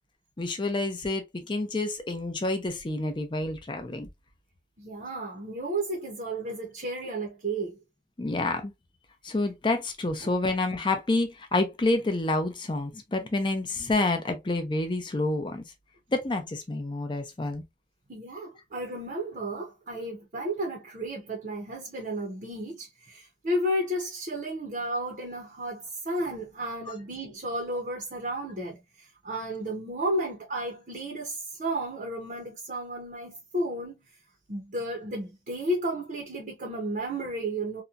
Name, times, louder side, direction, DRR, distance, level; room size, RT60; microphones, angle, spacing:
voice 1, 0.4-4.1 8.2-8.7 9.2-15.6 16.1-17.6 26.9-27.0, left 2 dB, 25° left, 0.5 m, -28 dB
voice 2, 4.8-7.8 10.2-10.3 18.1-34.0 34.5-37.8, right 1 dB, 50° right, 0.6 m, -33 dB
2.8 x 2.2 x 2.4 m
head